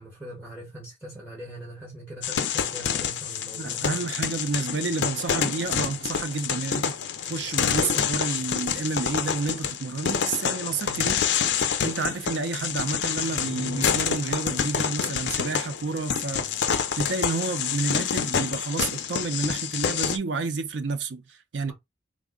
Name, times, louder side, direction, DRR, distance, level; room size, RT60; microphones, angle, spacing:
voice 1, 0.0-4.0 10.8-11.1 21.7-21.8, right 1 dB, 10° right, 1.1 m, -41 dB
sound 1, 2.2-20.2, left 7 dB, 80° left, 0.5 m, -27 dB
voice 2, 3.6-7.0 7.3-11.2 11.8-16.5 17.0-21.7, right 4 dB, 85° right, 0.5 m, -30 dB
3.5 x 2.0 x 3.6 m
head